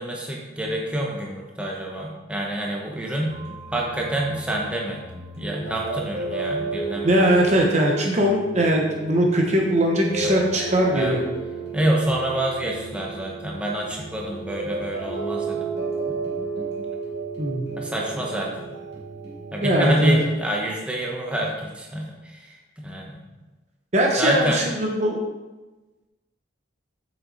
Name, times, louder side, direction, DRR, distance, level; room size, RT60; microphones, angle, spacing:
voice 1, 0.0-3.4 3.7-5.0 5.4-7.3 10.2-10.4 10.9-11.2 11.7-15.7 16.1-16.2 17.7-18.5 19.5-23.2 24.2-24.6, right 1 dB, 5° right, -2 dB, 1.0 m, -27 dB
sound 1, 3.3-20.1, right 3 dB, 55° right, 2.6 m, -33 dB
voice 2, 7.0-11.2 17.4-17.7 19.6-20.2 23.9-25.2, equal, 35° right, 0 dB, 0.9 m, -20 dB
7.9 x 6.4 x 4.0 m, 1.2 s
head